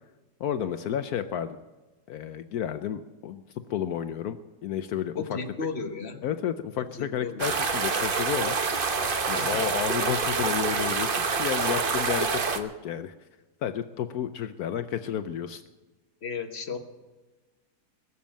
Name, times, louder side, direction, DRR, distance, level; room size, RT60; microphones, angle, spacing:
voice 1, 0.4-1.6 2.1-3.4 3.7-4.4 4.6-5.2 6.2-8.6 9.3-13.1 13.6-15.6, left 9 dB, 70° left, 10 dB, 1.1 m, -31 dB
voice 2, 5.2-6.2 6.8-7.4 9.3-9.6 16.2-16.8, left 5 dB, 40° left, 6 dB, 1.3 m, -34 dB
sound 1, 7.4-12.6, right 5 dB, 40° right, 1.0 m, -27 dB
21.5 x 7.2 x 7.5 m, 1.2 s
omnidirectional pair, 1.8 m